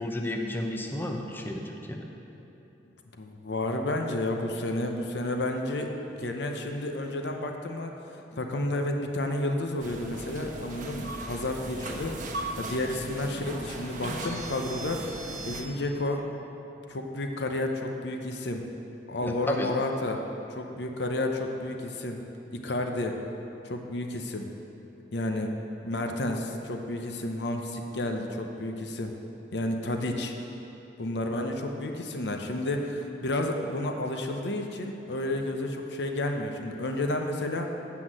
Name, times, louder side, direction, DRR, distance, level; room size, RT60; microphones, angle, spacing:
voice 1, 0.0-1.6 1.9-2.1 19.2-19.7, left 1 dB, 10° left, 1 dB, 0.6 m, -32 dB
voice 2, 3.2-8.0 8.3-16.2 16.9-18.6 19.1-20.2 20.5-22.2 22.5-23.2 23.6-24.5 25.1-25.5 25.8-29.1 29.5-30.3 31.0-37.7, left 1 dB, 70° left, 4 dB, 0.8 m, -31 dB
sound 1, 9.8-15.6, right 2 dB, 50° right, 1.0 m, -37 dB
8.1 x 5.9 x 7.5 m, 3.0 s
head